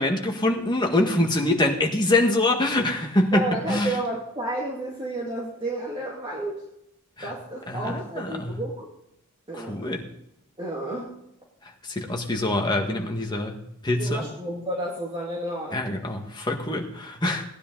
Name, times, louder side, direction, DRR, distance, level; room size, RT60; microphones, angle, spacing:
voice 1, 0.0-4.0 7.2-7.3 7.7-8.5 9.5-10.0 11.8-13.6 13.8-14.3 15.7-17.4, left 1 dB, 20° left, 2 dB, 1.7 m, -24 dB
voice 2, 3.3-6.6 7.2-8.9 9.5-10.1 10.6-11.1 14.0-16.0, right 1 dB, 25° right, -3 dB, 2.4 m, -31 dB
18.0 x 10.0 x 4.0 m, 0.78 s
head